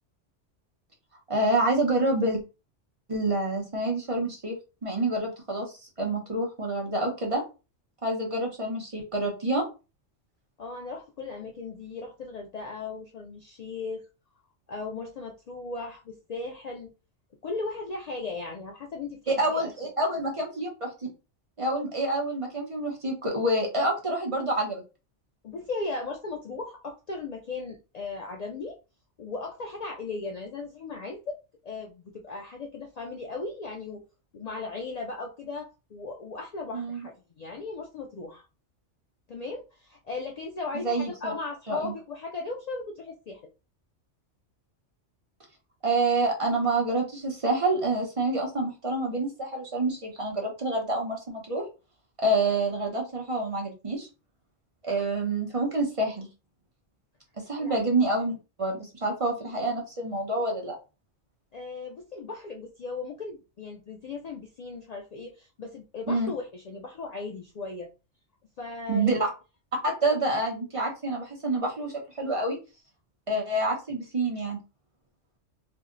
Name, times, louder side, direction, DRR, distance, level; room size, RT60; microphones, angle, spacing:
voice 1, 1.3-2.4 3.1-4.6 4.8-7.4 8.0-9.7 19.3-20.9 21.6-24.8 36.7-37.1 40.7-41.3 41.7-41.9 45.8-51.6 52.2-54.1 54.8-56.3 57.5-60.7 66.1-66.3 68.9-69.3 69.8-72.6 73.3-74.6, right 2 dB, 30° right, 0 dB, 0.7 m, -27 dB
voice 2, 10.6-14.1 14.7-16.9 17.4-19.7 25.4-28.8 29.2-31.4 31.6-34.0 34.3-38.5 39.3-43.4 57.6-57.8 61.5-67.9 68.6-69.3, left 3 dB, 85° left, 1 dB, 0.3 m, -37 dB
2.6 x 2.1 x 3.7 m, 0.30 s
omnidirectional pair, 1.2 m